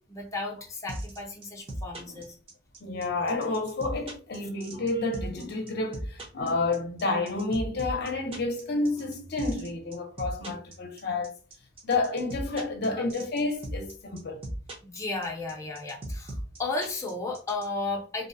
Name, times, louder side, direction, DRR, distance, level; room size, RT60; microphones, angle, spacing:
voice 1, 0.0-2.4 12.9-13.0 14.8-18.3, left 3 dB, 15° left, 0.5 m, -34 dB
sound 1, 0.9-17.7, right 1 dB, 30° right, 0.6 m, -37 dB
voice 2, 2.8-11.3 11.8-14.4, left 3 dB, 60° left, 0.6 m, -30 dB
2.6 x 2.0 x 2.6 m
head